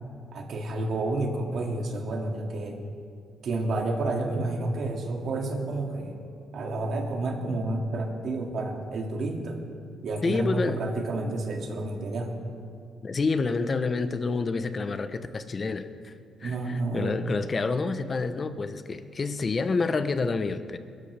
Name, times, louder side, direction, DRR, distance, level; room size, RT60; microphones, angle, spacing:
voice 1, 0.3-2.8 3.4-6.2 6.5-9.6 10.0-12.3 16.4-17.1, right 2 dB, 65° right, 1 dB, 2.2 m, -30 dB
voice 2, 10.2-10.8 13.0-16.1 16.4-20.8, left 4 dB, 35° left, 11 dB, 0.8 m, -28 dB
22.0 x 12.5 x 3.4 m, 2.3 s
cardioid pair, 90°, 0 cm